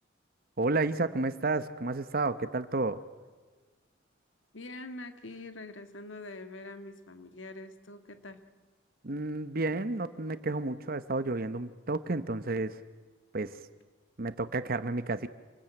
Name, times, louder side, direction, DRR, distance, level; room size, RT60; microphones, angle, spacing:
voice 1, 0.6-3.0 9.0-12.8 13.3-13.6 14.2-15.3, right 3 dB, 50° right, 12 dB, 1.0 m, -31 dB
voice 2, 4.5-8.4, left 2 dB, 85° left, 9 dB, 1.8 m, -44 dB
27.0 x 20.5 x 8.9 m, 1.4 s
head